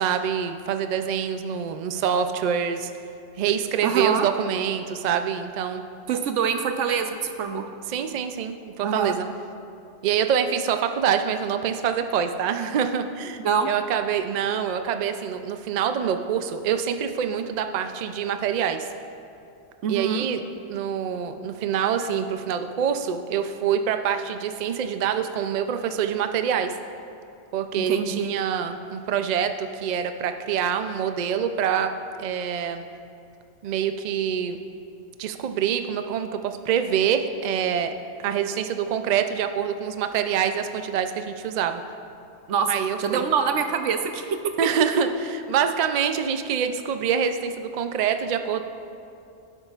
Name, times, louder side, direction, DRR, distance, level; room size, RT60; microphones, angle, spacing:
voice 1, 0.0-2.9 3.4-5.8 7.9-9.3 10.0-18.9 19.9-20.4 20.7-26.7 27.5-31.9 32.2-32.8 33.6-34.6 35.2-37.9 38.2-41.8 42.7-43.2 44.6-48.6, right 8 dB, 55° right, 8 dB, 0.5 m, -25 dB
voice 2, 3.8-4.3 6.1-7.7 8.8-9.2 13.4-13.7 19.8-20.3 27.8-28.3 42.5-44.4, right 6 dB, 90° right, 6 dB, 1.0 m, -25 dB
16.5 x 7.7 x 2.4 m, 2.6 s
omnidirectional pair, 1.2 m